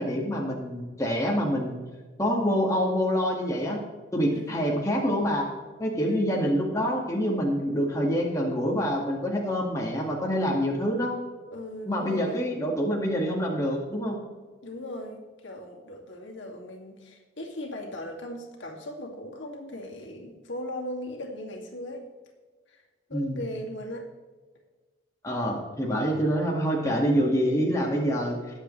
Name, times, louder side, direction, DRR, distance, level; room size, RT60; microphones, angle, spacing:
voice 1, 0.0-1.8 2.2-3.8 4.1-5.5 5.8-11.1 11.9-14.2 23.1-23.4 25.2-28.4, equal, 15° left, -2 dB, 2.0 m, -26 dB
voice 2, 4.3-4.7 6.0-6.2 11.5-12.5 14.6-22.1 22.7-22.8 23.1-24.1, left 1 dB, 75° left, 0 dB, 2.4 m, -38 dB
20.0 x 8.1 x 3.3 m, 1.3 s
head